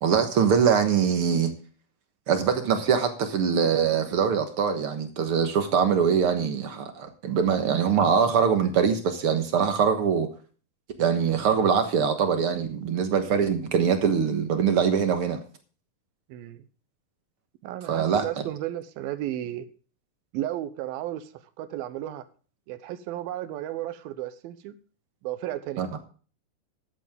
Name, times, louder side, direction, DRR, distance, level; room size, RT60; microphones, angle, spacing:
voice 1, 0.0-1.5 2.3-10.3 11.0-15.4 17.9-18.2 25.8-25.9, right 7 dB, 60° right, 1.4 m, -23 dB
voice 2, 16.3-16.7 17.6-19.7 20.3-22.2 22.7-24.7 25.2-25.9, right 13 dB, 85° right, 2.7 m, -33 dB
13.0 x 10.5 x 3.6 m
omnidirectional pair, 4.2 m